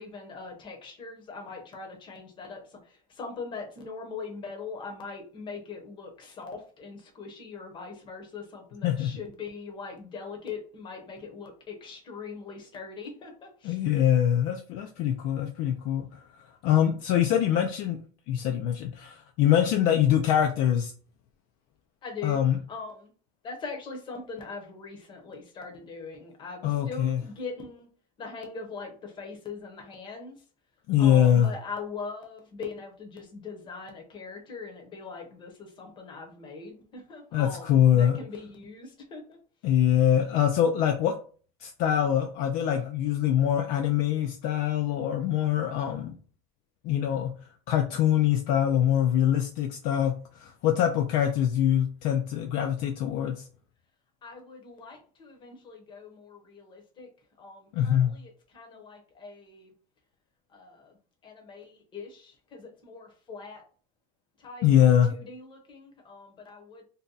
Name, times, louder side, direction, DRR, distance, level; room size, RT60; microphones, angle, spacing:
voice 1, 0.0-13.8 22.0-22.4 22.7-23.1 23.4-27.9 28.2-30.4 31.0-39.4 54.2-57.1 57.4-59.7 60.5-60.9 61.2-63.6 64.4-66.8, left 4 dB, 25° left, 3 dB, 0.8 m, -41 dB
voice 2, 13.6-16.2 16.6-18.0 18.3-20.9 22.2-22.6 26.6-27.2 30.9-31.5 37.3-38.2 39.6-41.1 41.6-46.1 46.8-47.3 47.7-53.5 57.7-58.1 64.6-65.1, left 10 dB, 50° left, 4 dB, 0.4 m, -24 dB
2.7 x 2.2 x 3.8 m, 0.42 s
cardioid pair, 155°, 18 cm